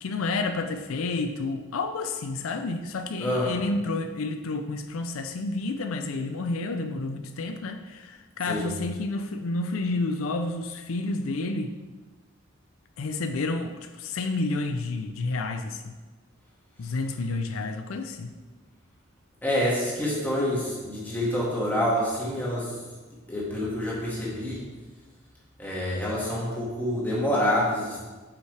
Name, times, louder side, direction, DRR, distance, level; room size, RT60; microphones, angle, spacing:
voice 1, 0.0-11.7 13.0-15.9 16.8-18.3, left 3 dB, 85° left, 7 dB, 0.5 m, -30 dB
voice 2, 3.2-3.5 8.4-8.7 19.4-22.8 23.3-24.6 25.6-28.0, left 1 dB, 10° left, -6 dB, 1.8 m, -27 dB
8.1 x 5.5 x 3.3 m, 1.3 s
head